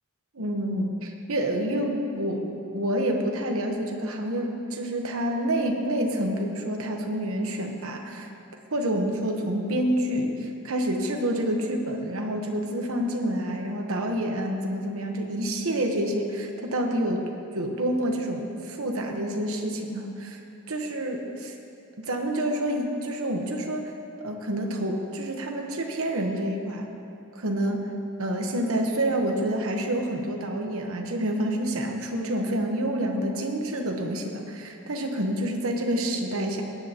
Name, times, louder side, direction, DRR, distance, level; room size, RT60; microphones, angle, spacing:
voice 1, 0.3-8.3 8.7-17.3 17.5-20.4 20.7-21.5 22.0-23.9 24.2-26.9 27.3-27.9 28.2-36.6, right 1 dB, 65° right, 2 dB, 1.1 m, -28 dB
17.5 x 10.0 x 2.9 m, 2.6 s
head